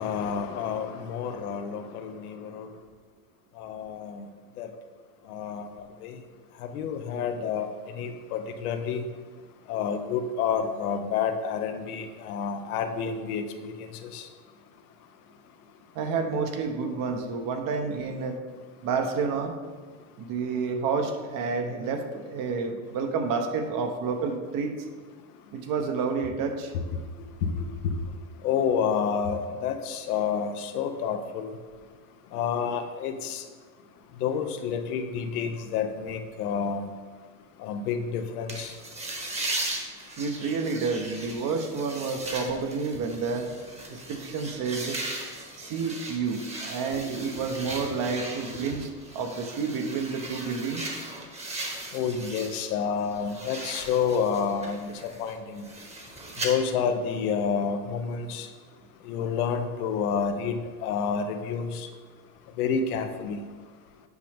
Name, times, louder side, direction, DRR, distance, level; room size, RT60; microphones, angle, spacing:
voice 1, 0.0-2.7 3.6-4.3 4.6-4.7 5.3-6.2 6.7-7.7 7.9-9.0 9.7-14.2 26.7-26.8 27.4-27.9 28.4-31.5 32.3-33.4 34.2-36.9 37.6-38.7 51.9-54.9 55.2-55.6 56.4-58.5 59.1-61.9 62.6-63.4, left 6 dB, 80° left, 7 dB, 0.9 m, -29 dB
voice 2, 15.9-18.4 18.8-19.6 20.2-24.8 25.5-26.7 40.2-43.5 43.9-45.0 45.6-50.9, right 5 dB, 45° right, 6 dB, 1.0 m, -29 dB
sound 1, 38.5-52.7 53.0-56.5, right 2 dB, 15° right, 1.2 m, -38 dB
8.3 x 5.2 x 3.5 m, 1.5 s
supercardioid pair, 105°, 44 cm